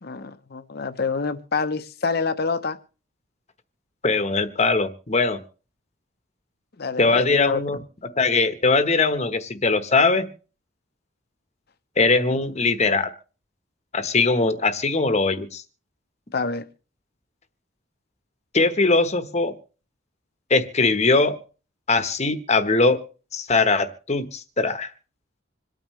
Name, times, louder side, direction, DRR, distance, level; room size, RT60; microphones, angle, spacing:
voice 1, 0.0-2.8 6.8-7.6 12.3-12.5 16.3-16.6, left 4 dB, 55° left, 12 dB, 0.8 m, -27 dB
voice 2, 4.0-5.4 7.0-7.8 8.2-10.3 12.0-13.1 13.9-15.6 18.5-19.5 20.5-21.4 21.9-23.0 23.3-24.9, left 3 dB, 35° left, 11 dB, 1.1 m, -21 dB
26.5 x 9.0 x 3.2 m, 0.37 s
head